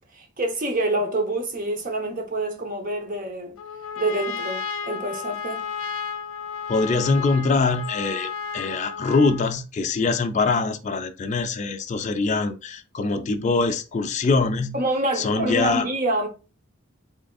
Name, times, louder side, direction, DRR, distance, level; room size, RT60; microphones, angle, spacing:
voice 1, 0.2-3.6 4.0-5.7 14.7-16.3, right 2 dB, 40° right, 0.8 m, -26 dB
Trumpet, 3.6-9.6, left 6 dB, 80° left, 0.7 m, -33 dB
voice 2, 6.7-14.8 15.2-15.8, left 3 dB, 35° left, 0.4 m, -23 dB
3.7 x 3.4 x 2.3 m
head